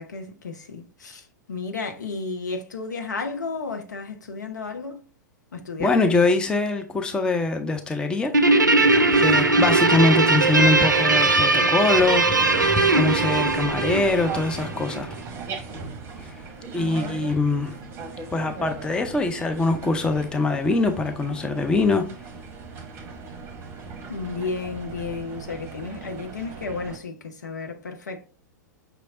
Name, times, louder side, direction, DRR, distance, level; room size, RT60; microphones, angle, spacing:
voice 1, 0.0-5.0 5.5-6.1 16.7-17.3 24.1-28.3, left 4 dB, 70° left, 0.9 m, -33 dB
voice 2, 5.8-8.3 8.9-12.3 12.6-15.2 16.7-17.8 18.3-22.1, left 3 dB, 10° left, 0.5 m, -23 dB
Guitar, 8.3-15.0, right 3 dB, 85° right, 0.5 m, -20 dB
sound 1, 8.8-27.0, right 3 dB, 25° right, 0.8 m, -37 dB
5.7 x 3.2 x 2.5 m
figure-of-eight pair, 100°, 10 cm